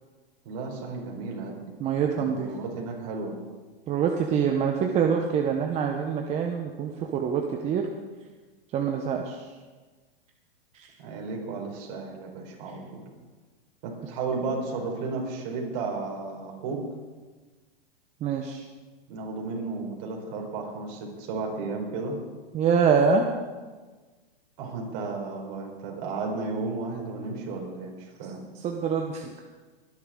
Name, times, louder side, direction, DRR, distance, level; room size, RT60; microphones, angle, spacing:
voice 1, 0.4-1.7 2.1-3.4 11.0-13.0 13.8-16.8 19.1-22.2 24.6-28.4, right 3 dB, 45° right, 0 dB, 4.5 m, -33 dB
voice 2, 1.8-2.5 3.9-7.9 8.7-9.5 10.7-10.9 18.2-18.6 22.5-23.3 28.5-29.3, right 6 dB, 20° right, 2 dB, 1.0 m, -25 dB
22.5 x 11.0 x 3.8 m, 1.3 s
hypercardioid pair, 140°, 30 cm